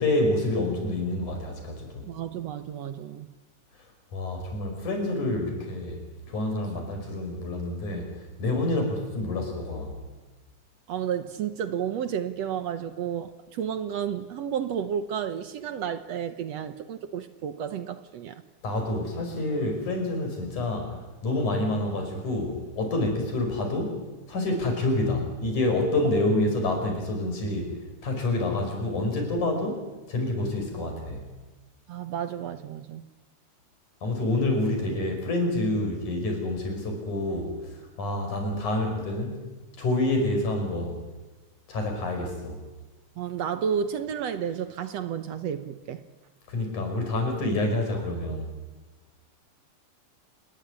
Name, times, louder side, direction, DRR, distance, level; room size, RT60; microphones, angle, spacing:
voice 1, 0.0-2.0 4.1-6.0 6.3-8.1 8.4-10.0 18.6-24.0 24.3-27.7 28.0-29.8 30.1-31.3 34.0-37.5 38.0-39.5 39.8-41.0 41.7-42.6 46.5-48.5, left 2 dB, 75° left, 6.8 m, -27 dB
voice 2, 2.1-3.3 10.9-18.4 26.1-26.2 31.9-33.0 43.2-46.0, right 8 dB, 65° right, 1.9 m, -31 dB
28.0 x 20.0 x 10.0 m
omnidirectional pair, 3.6 m